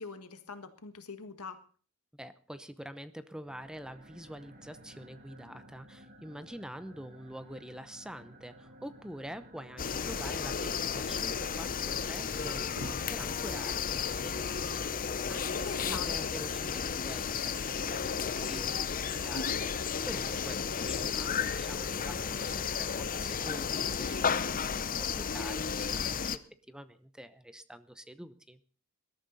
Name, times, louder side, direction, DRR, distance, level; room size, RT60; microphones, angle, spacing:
voice 1, 0.0-1.6 15.5-16.4 19.3-19.6, left 3 dB, 85° left, 9 dB, 1.7 m, -42 dB
voice 2, 2.1-19.5 20.0-26.4 26.7-28.6, equal, 5° right, 12 dB, 0.8 m, -46 dB
sound 1, 3.4-13.9, right 1 dB, 45° right, 2.9 m, -55 dB
sound 2, 9.8-26.4, left 6 dB, 40° left, 0.7 m, -33 dB
sound 3, 12.7-13.4 14.1-14.3 15.1-15.2 15.4-15.7 17.0-17.1 17.3-17.4 17.6-17.7 19.2-19.8 22.0-22.7 24.0-24.6 25.8-26.3, left 1 dB, 85° right, 6.5 m, -48 dB
21.0 x 13.0 x 4.1 m, 0.40 s
head